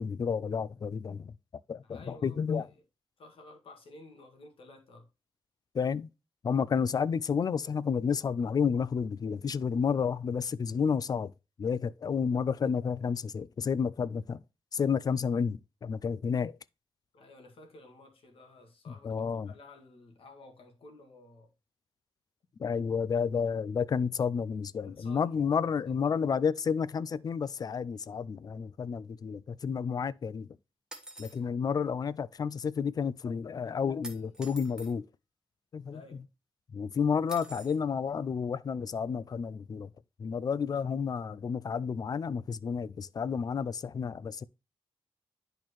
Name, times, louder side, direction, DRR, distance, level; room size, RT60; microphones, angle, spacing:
voice 1, 0.0-1.4 1.7-2.7 5.7-6.1 6.4-11.3 11.6-14.4 14.7-16.6 18.9-19.5 22.6-30.5 31.2-35.1 35.7-36.0 36.7-39.9 40.2-44.4, left 6 dB, 40° left, 0.4 m, -31 dB
voice 2, 1.8-2.8 3.2-5.1 17.1-21.5 24.8-25.4 25.9-26.0 35.9-36.2, left 2 dB, 70° left, 1.9 m, -53 dB
sound 1, 30.9-31.4 34.0-34.9 37.3-37.8, right 1 dB, 5° right, 1.1 m, -46 dB
10.5 x 4.4 x 3.0 m
wide cardioid pair, 140°, 10 cm